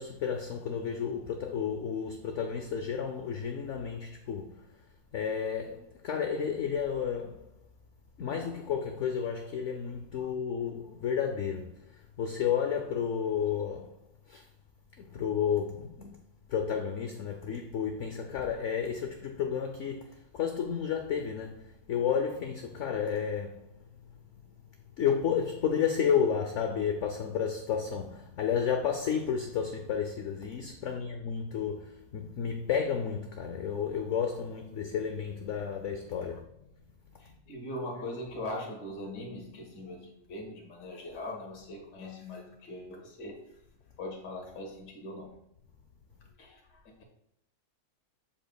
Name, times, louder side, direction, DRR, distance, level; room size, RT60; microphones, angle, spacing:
voice 1, 0.0-4.7 5.1-7.5 8.2-14.0 14.3-14.5 15.0-16.2 16.5-23.7 25.0-36.5, left 7 dB, 65° left, 0.8 m, -32 dB
voice 2, 37.2-43.4 44.0-45.4 46.4-47.0, left 1 dB, 80° left, 2.1 m, -41 dB
7.8 x 7.1 x 2.3 m
omnidirectional pair, 1.7 m